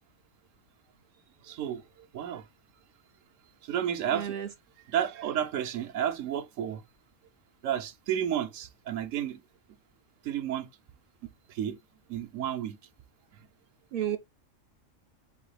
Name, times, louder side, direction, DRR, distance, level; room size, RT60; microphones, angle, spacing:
voice 1, 1.4-1.8 2.1-2.4 3.6-4.3 4.9-6.8 7.6-9.4 10.2-10.7 11.5-11.8 12.1-12.8, right 10 dB, 80° right, 1.0 m, -31 dB
voice 2, 4.1-4.5 13.9-14.2, right 10 dB, 60° right, 0.6 m, -31 dB
4.0 x 3.8 x 3.1 m
omnidirectional pair, 1.3 m